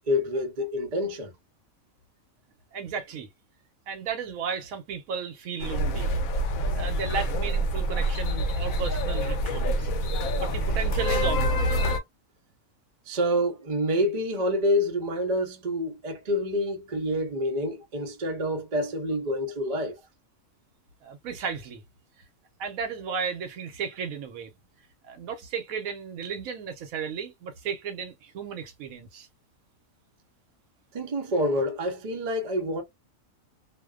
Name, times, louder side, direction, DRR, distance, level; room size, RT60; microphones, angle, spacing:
voice 1, 0.1-1.3 13.1-20.0 30.9-32.8, left 1 dB, 40° right, 0.6 m, -27 dB
voice 2, 2.7-3.3 3.9-6.1 6.7-9.9 10.4-11.8 21.0-21.8 22.6-24.5 25.0-29.3, right 6 dB, 85° right, 1.1 m, -34 dB
sound 1, 5.6-12.0, right 1 dB, 85° left, 1.0 m, -26 dB
2.5 x 2.1 x 2.2 m
omnidirectional pair, 1.4 m